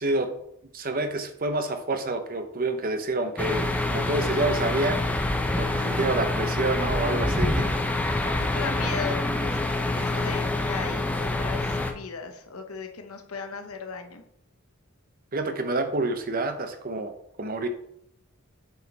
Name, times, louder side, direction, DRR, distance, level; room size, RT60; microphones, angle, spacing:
voice 1, 0.7-3.6 3.9-5.0 5.6-7.7 15.3-17.1 17.4-17.7, right 2 dB, 40° right, 8 dB, 0.8 m, -28 dB
sound 1, 3.4-11.9, left 2 dB, 5° left, 0.5 m, -26 dB
voice 2, 8.2-9.6 9.9-14.2, left 5 dB, 80° left, 6 dB, 1.1 m, -37 dB
8.1 x 4.9 x 4.1 m, 0.73 s
head